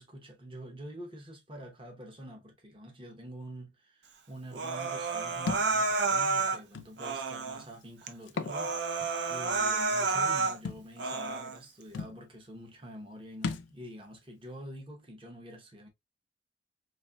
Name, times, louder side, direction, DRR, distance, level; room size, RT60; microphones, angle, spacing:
voice 1, 0.0-15.9, equal, 30° right, 0.8 m, -47 dB
Human voice, 4.5-6.6 7.0-7.6 8.1-8.2 8.5-10.6 11.0-11.6, right 4 dB, 65° right, 0.6 m, -30 dB
Thump thud, 5.5-5.7 6.7-6.9 8.2-8.6 9.0-9.1 10.6-10.9 11.6-11.7 11.9-12.2 13.4-13.7, left 4 dB, 75° left, 0.4 m, -35 dB
4.1 x 2.9 x 2.2 m
head